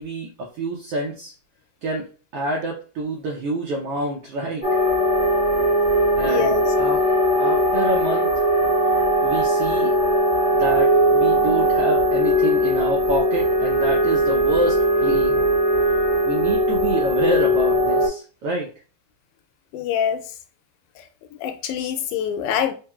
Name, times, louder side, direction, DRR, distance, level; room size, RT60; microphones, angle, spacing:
voice 1, 0.0-1.3 1.8-2.1 2.3-4.7 6.2-7.0 7.4-8.4 9.2-9.9 10.5-15.4 16.2-18.7, right 1 dB, 75° right, 1.4 m, -27 dB
sound 1, 4.6-18.1, equal, 35° left, 0.5 m, -19 dB
voice 2, 6.2-6.7 19.7-20.2 21.4-22.7, left 8 dB, 85° left, 2.0 m, -24 dB
4.6 x 3.2 x 2.3 m
omnidirectional pair, 3.5 m